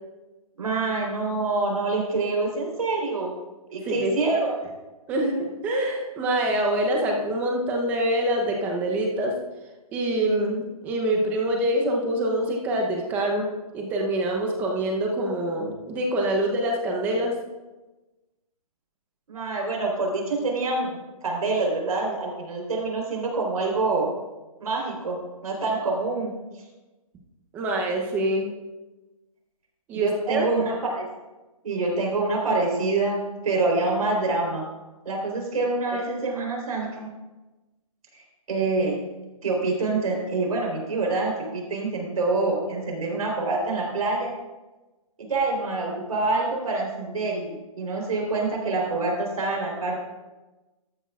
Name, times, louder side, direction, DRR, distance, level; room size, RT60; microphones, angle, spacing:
voice 1, 0.6-3.3 3.7-4.6 19.3-20.9 21.2-24.1 24.6-25.2 25.4-26.3 29.9-31.1 31.6-34.6 35.0-37.1 38.1-38.2 38.5-39.0 39.4-44.3 45.2-50.0, right 3 dB, 75° right, 0 dB, 3.8 m, -26 dB
voice 2, 5.1-9.3 9.9-13.5 13.7-17.3 27.5-28.5 29.9-30.5 35.9-36.0, right 1 dB, 10° right, 0 dB, 0.8 m, -25 dB
13.0 x 10.0 x 2.4 m, 1.1 s
hypercardioid pair, 170°, 19 cm